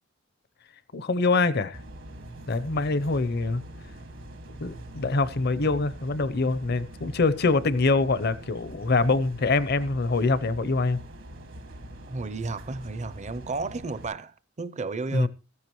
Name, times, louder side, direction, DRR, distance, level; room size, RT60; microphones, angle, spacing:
voice 1, 0.9-1.8 2.5-3.6 4.6-11.0 15.1-15.3, left 3 dB, 55° left, 0.7 m, -24 dB
sound 1, 1.7-14.0, right 1 dB, 80° right, 2.0 m, -44 dB
voice 2, 12.1-15.3, right 3 dB, 35° right, 0.6 m, -33 dB
15.5 x 14.0 x 3.1 m
head